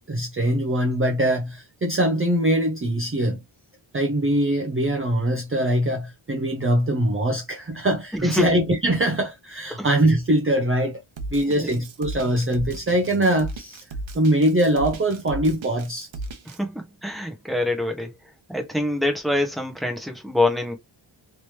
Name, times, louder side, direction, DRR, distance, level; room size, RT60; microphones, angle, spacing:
voice 1, 0.1-3.4 3.9-11.0 11.3-13.8 14.1-16.1, right 1 dB, 30° right, 0.6 m, -22 dB
voice 2, 8.1-8.5 9.8-9.9 11.4-11.7 16.4-18.1 18.5-20.7, left 1 dB, ahead, 1.0 m, -25 dB
Drum kit, 11.2-16.6, right 2 dB, 70° right, 0.9 m, -35 dB
3.2 x 3.0 x 3.0 m
wide cardioid pair, 140°, 47 cm